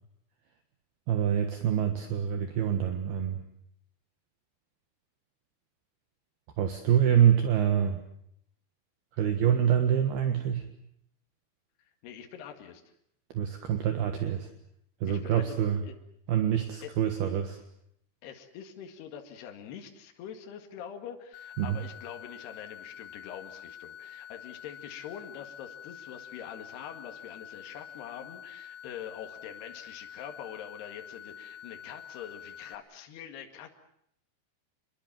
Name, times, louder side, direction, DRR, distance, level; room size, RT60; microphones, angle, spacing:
voice 1, 1.1-3.4 6.6-8.0 9.2-10.6 13.3-14.5 15.0-15.8 16.3-17.6 21.6-21.8, right 9 dB, 65° right, 7 dB, 3.1 m, -26 dB
voice 2, 12.0-12.8 15.1-15.6 15.9-16.0 16.8-16.9 18.2-33.8, left 9 dB, 65° left, 4 dB, 3.9 m, -44 dB
sound 1, 21.3-32.8, left 9 dB, 85° left, 4.8 m, -47 dB
27.5 x 22.0 x 7.5 m, 0.71 s
omnidirectional pair, 5.3 m